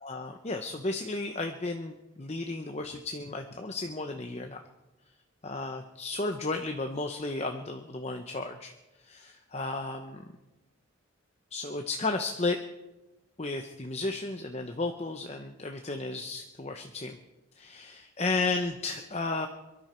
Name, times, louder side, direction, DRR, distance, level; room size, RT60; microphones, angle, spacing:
voice 1, 0.0-4.6 5.4-8.7 9.0-10.2 11.5-12.6 13.4-17.2 17.6-19.5, left 3 dB, 30° left, 5 dB, 0.8 m, -33 dB
23.0 x 12.5 x 4.4 m, 1.0 s
head